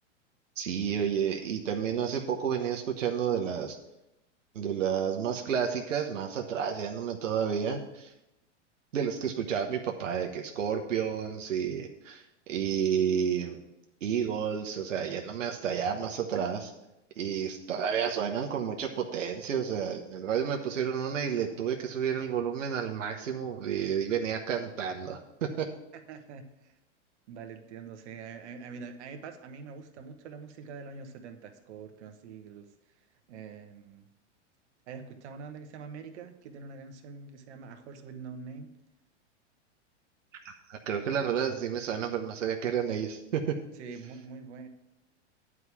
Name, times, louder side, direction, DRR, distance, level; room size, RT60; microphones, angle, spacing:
voice 1, 0.6-3.8 4.5-8.1 8.9-12.2 12.5-13.6 14.0-16.7 17.2-25.7 40.7-43.6, right 8 dB, 90° right, 3 dB, 1.0 m, -31 dB
voice 2, 26.1-26.7 27.3-32.7 33.3-34.1 34.9-38.7 43.8-44.7, right 5 dB, 65° right, 6 dB, 1.3 m, -44 dB
9.5 x 4.9 x 7.0 m, 0.90 s
hypercardioid pair, 120°, 37 cm